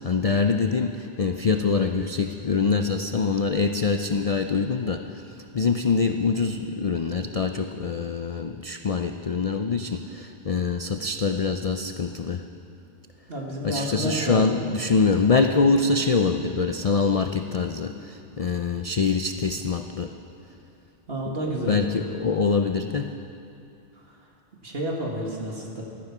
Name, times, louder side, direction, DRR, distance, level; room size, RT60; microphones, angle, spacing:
voice 1, 0.0-5.2 5.5-12.4 13.6-20.1 21.5-23.1, left 4 dB, 50° left, 6 dB, 0.4 m, -24 dB
voice 2, 13.3-14.6 21.1-21.8 24.6-25.8, right 1 dB, 55° right, -1 dB, 2.3 m, -30 dB
15.5 x 13.5 x 6.0 m, 2.7 s
omnidirectional pair, 1.2 m